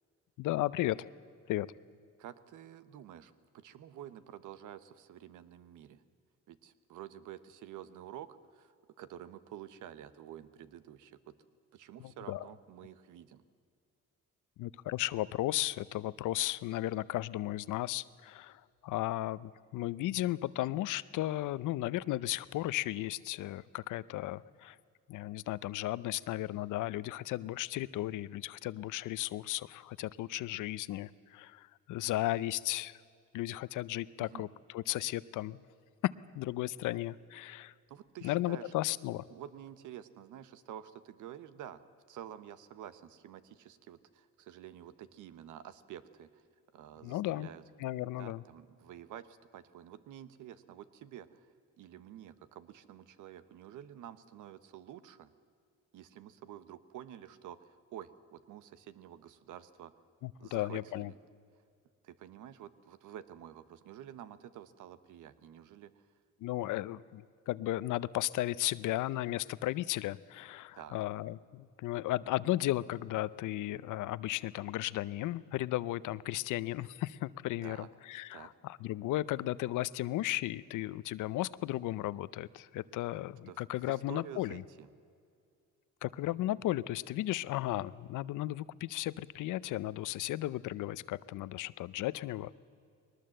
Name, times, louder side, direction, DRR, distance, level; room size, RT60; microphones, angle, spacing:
voice 1, 0.4-1.1 1.5-1.7 12.0-12.4 14.6-24.8 25.1-33.0 33.3-34.5 34.7-35.6 36.0-37.7 38.2-39.2 47.0-47.5 47.8-48.4 60.2-61.1 66.4-84.6 86.0-92.6, left 15 dB, 85° left, 18 dB, 0.7 m, -35 dB
voice 2, 2.2-6.0 6.5-11.4 11.7-13.4 34.2-34.4 37.9-38.7 39.3-46.4 46.7-47.6 48.1-55.3 55.9-59.9 60.4-61.2 62.0-66.1 70.7-71.0 77.6-77.9 78.3-78.5 83.5-84.9, right 10 dB, 85° right, 13 dB, 1.1 m, -49 dB
21.5 x 19.5 x 7.7 m, 2.3 s
cardioid pair, 90°, 30 cm